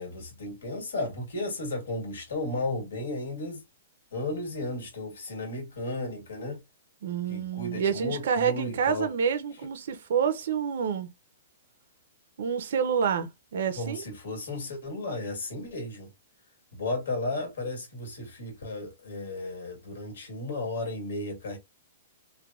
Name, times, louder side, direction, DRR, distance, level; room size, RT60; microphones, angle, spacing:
voice 1, 0.0-3.6 4.1-6.6 7.3-9.1 13.8-16.1 16.7-21.6, left 2 dB, 85° left, 1.6 m, -34 dB
voice 2, 7.0-11.1 12.4-14.0, right 7 dB, 70° right, 0.6 m, -28 dB
3.3 x 2.2 x 2.4 m
hypercardioid pair, 150°, 0 cm